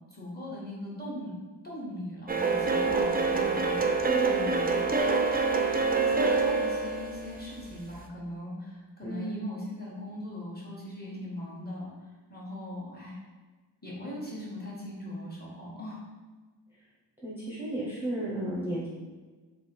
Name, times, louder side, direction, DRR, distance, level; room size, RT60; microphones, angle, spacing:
voice 1, 0.1-1.3 1.6-3.8 4.2-4.9 5.6-11.9 12.3-13.2 13.8-16.0, left 1 dB, 20° left, -5 dB, 1.4 m, -40 dB
sound 1, 2.3-8.0, right 4 dB, 25° right, 0.3 m, -26 dB
voice 2, 9.0-9.4 17.2-18.9, right 1 dB, 5° right, -7 dB, 0.8 m, -33 dB
3.4 x 3.4 x 4.4 m, 1.3 s
wide cardioid pair, 55°, 42 cm